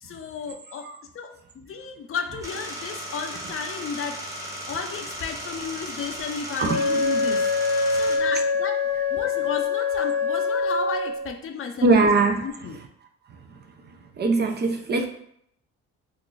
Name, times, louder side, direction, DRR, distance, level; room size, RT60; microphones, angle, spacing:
voice 1, 0.0-0.9 1.1-4.2 4.7-7.5 7.9-8.8 9.1-12.1 12.4-12.8, left 6 dB, 45° left, 4 dB, 0.5 m, -33 dB
sound 1, 2.4-8.2, right 1 dB, 10° right, 0.9 m, -36 dB
Wind instrument woodwind instrument, 6.6-11.3, left 4 dB, 85° right, 0.8 m, -24 dB
voice 2, 11.8-12.5 13.3-13.6 14.2-15.1, right 3 dB, 35° right, 5 dB, 0.4 m, -21 dB
2.5 x 2.3 x 3.8 m, 0.70 s
cardioid pair, 90°, 30 cm